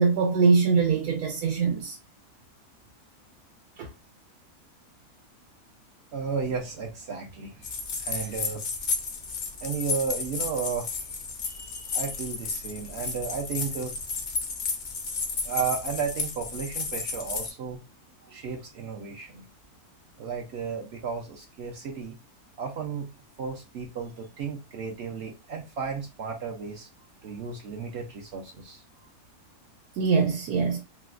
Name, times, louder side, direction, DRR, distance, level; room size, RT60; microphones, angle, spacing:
voice 1, 0.0-1.9 3.8-3.9 30.0-30.8, right 5 dB, 85° right, 1.1 m, -23 dB
voice 2, 6.1-7.7 8.0-8.6 9.6-11.0 11.4-14.0 15.4-17.8 18.3-19.4 20.2-22.1 22.6-23.1 23.4-26.9 27.2-28.8, right 6 dB, 65° right, 0.6 m, -33 dB
sound 1, 7.6-17.5, left 4 dB, 80° left, 0.4 m, -33 dB
3.9 x 2.1 x 2.4 m
omnidirectional pair, 1.6 m